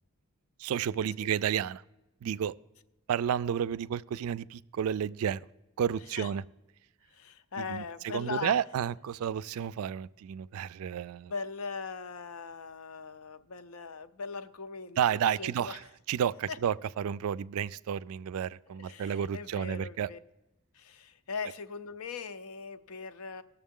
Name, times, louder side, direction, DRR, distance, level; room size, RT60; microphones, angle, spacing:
voice 1, 0.6-1.8 2.2-2.5 3.1-5.4 5.8-6.4 7.6-11.3 15.0-15.8 16.1-20.1, right 8 dB, 75° right, 0.3 m, -31 dB
voice 2, 7.1-8.6 11.2-15.9 16.5-16.6 18.7-20.2 20.7-23.4, left 5 dB, 75° left, 0.6 m, -40 dB
18.5 x 6.8 x 3.7 m
head